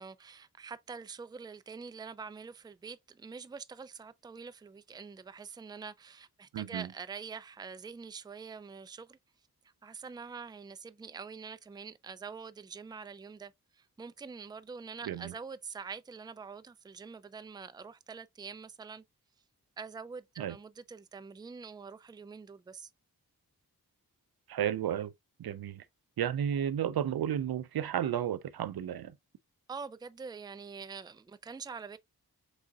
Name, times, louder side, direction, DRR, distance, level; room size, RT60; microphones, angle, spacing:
voice 1, 0.0-9.2 9.8-19.0 19.8-22.9 29.7-32.0, right 5 dB, 10° right, 0.4 m, -45 dB
voice 2, 6.5-6.9 15.1-15.3 20.4-20.6 24.5-25.1 25.4-25.8 26.2-29.2, right 10 dB, 75° right, 0.5 m, -32 dB
4.9 x 3.7 x 2.3 m
cardioid pair, 50°, 37 cm